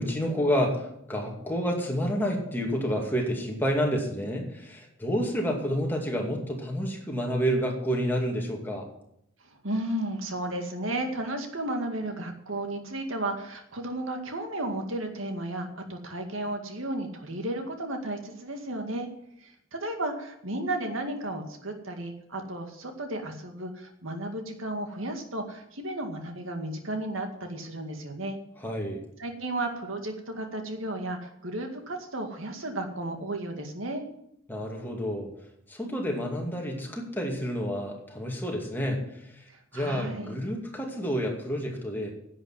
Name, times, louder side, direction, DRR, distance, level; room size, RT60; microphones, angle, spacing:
voice 1, 0.0-8.9 28.6-29.0 34.5-35.3 35.7-39.4 39.7-42.1, equal, 10° left, 0 dB, 2.4 m, -29 dB
voice 2, 9.4-19.1 19.4-28.4 29.2-34.1 39.5-40.4, right 1 dB, 80° right, 4 dB, 2.1 m, -33 dB
11.0 x 8.0 x 7.5 m, 0.74 s
head